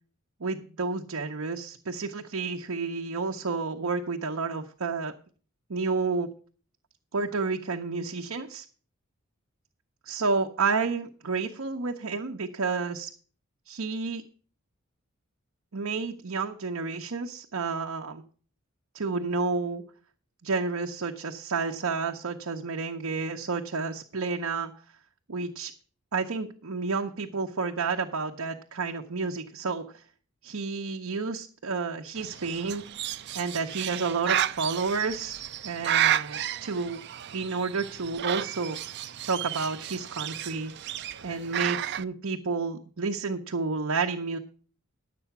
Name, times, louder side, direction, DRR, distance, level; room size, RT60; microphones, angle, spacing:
voice 1, 0.4-5.1 5.7-6.3 7.1-8.6 10.0-13.1 13.7-14.2 15.7-18.2 18.9-19.8 20.4-24.7 25.3-25.7 26.1-30.0 30.4-32.8 33.3-37.0 37.3-38.8 39.2-40.7 41.2-44.4, right 4 dB, 80° right, 2 dB, 0.8 m, -30 dB
Bird, 32.2-42.0, right 11 dB, 55° right, 0.5 m, -32 dB
11.0 x 7.7 x 5.9 m, 0.44 s
head